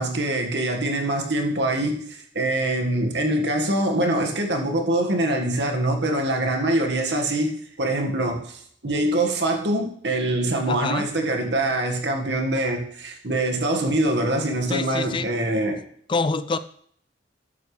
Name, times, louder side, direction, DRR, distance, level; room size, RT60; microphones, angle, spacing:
voice 1, 0.0-15.8, right 1 dB, 65° right, 1.8 m, -24 dB
voice 2, 10.7-11.1 14.7-15.3 16.1-16.6, left 3 dB, 25° left, 0.4 m, -25 dB
13.0 x 11.0 x 3.3 m
head